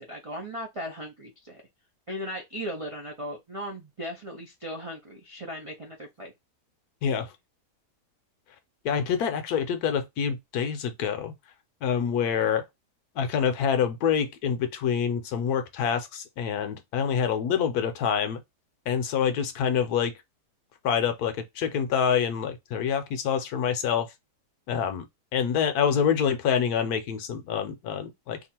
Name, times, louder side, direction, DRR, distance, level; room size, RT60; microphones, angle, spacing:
voice 1, 0.1-1.6 2.1-6.3, equal, 55° right, 0.3 m, -37 dB
voice 2, 7.0-7.3 8.8-11.3 11.8-12.7 13.2-18.4 18.9-20.1 20.8-24.1 24.7-25.0 25.3-28.4, left 7 dB, 70° left, 1.1 m, -26 dB
2.9 x 2.4 x 4.2 m
omnidirectional pair, 1.8 m